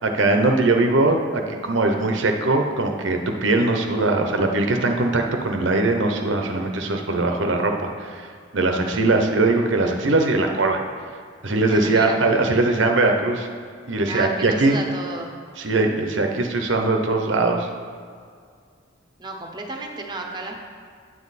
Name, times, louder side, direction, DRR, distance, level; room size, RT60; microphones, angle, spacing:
voice 1, 0.0-10.8 11.4-13.5 13.9-14.8 15.6-17.7, right 2 dB, 70° right, 3 dB, 0.8 m, -21 dB
voice 2, 11.7-12.2 14.1-15.3 19.2-20.6, right 2 dB, 20° right, 1 dB, 0.8 m, -32 dB
9.8 x 7.3 x 4.1 m, 2.1 s
head